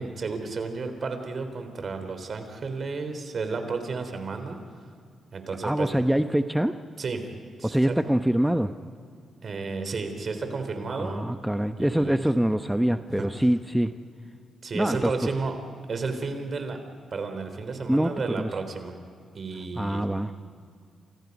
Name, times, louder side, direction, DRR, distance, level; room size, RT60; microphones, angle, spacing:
voice 1, 0.0-4.6 5.3-5.9 7.0-7.3 7.6-7.9 9.4-11.2 11.8-12.2 13.1-13.3 14.6-15.6 15.9-16.8 17.1-18.9 19.3-20.0, right 4 dB, 55° right, 7 dB, 3.5 m, -32 dB
voice 2, 5.6-6.8 7.6-8.7 10.9-13.9 14.7-15.3 17.9-18.5 19.8-20.3, right 1 dB, 5° right, 9 dB, 0.9 m, -24 dB
28.5 x 26.5 x 5.4 m, 2.1 s
supercardioid pair, 50°, 0 cm